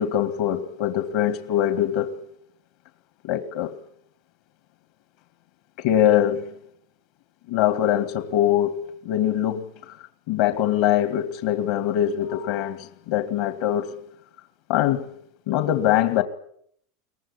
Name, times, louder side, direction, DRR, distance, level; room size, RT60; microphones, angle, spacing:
voice 1, 0.0-2.1 3.2-3.7 5.8-6.5 7.5-8.7 9.0-9.6 10.3-12.8 13.1-13.9 14.7-15.0 15.5-16.2, left 11 dB, 65° left, 2.2 m, -22 dB
23.0 x 19.0 x 9.9 m
supercardioid pair, 125°, 0 cm